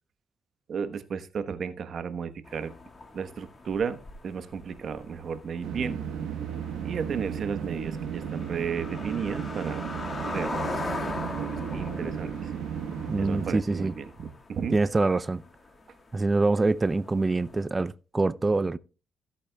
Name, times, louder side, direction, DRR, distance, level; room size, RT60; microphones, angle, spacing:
voice 1, 0.7-2.7 3.1-6.0 6.8-9.8 10.2-12.5 13.2-14.9, right 6 dB, 55° right, 1.0 m, -34 dB
sound 1, 2.4-17.7, left 3 dB, 30° left, 1.8 m, -40 dB
sound 2, 5.6-13.5, right 8 dB, 80° right, 1.0 m, -34 dB
voice 2, 13.1-13.9 14.7-15.4 16.1-18.8, right 3 dB, 20° right, 0.4 m, -25 dB
16.0 x 8.4 x 2.3 m
cardioid pair, 90°, 0 cm